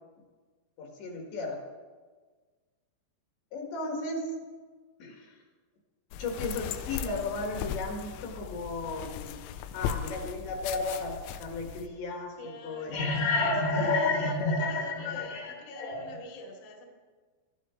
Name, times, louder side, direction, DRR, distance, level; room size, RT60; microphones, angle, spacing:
voice 1, 0.8-1.6 3.5-4.2 5.0-5.4 6.2-9.4 9.7-16.1, left 3 dB, 65° left, 1 dB, 3.7 m, -32 dB
sound 1, 6.1-11.9, left 9 dB, 85° left, 3.0 m, -37 dB
voice 2, 12.4-16.8, left 2 dB, 40° left, -1 dB, 1.8 m, -46 dB
19.5 x 12.5 x 3.8 m, 1.4 s
omnidirectional pair, 5.9 m